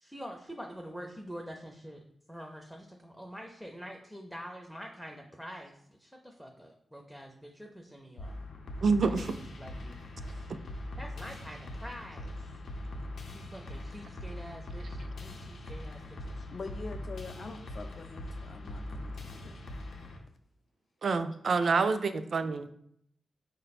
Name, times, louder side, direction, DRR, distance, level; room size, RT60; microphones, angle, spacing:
voice 1, 0.0-8.4 9.1-9.3 9.6-10.0 11.0-12.5 13.3-16.4, equal, ahead, 2 dB, 0.5 m, -46 dB
sound 1, 8.2-20.2, left 1 dB, 85° left, 0.7 m, -41 dB
voice 2, 8.8-9.3 21.0-22.7, right 4 dB, 60° right, 10 dB, 0.3 m, -27 dB
voice 3, 16.5-19.8 21.4-21.6 21.8-22.2, left 3 dB, 50° left, 7 dB, 0.5 m, -45 dB
5.1 x 2.2 x 4.1 m, 0.70 s
wide cardioid pair, 110°, 0 cm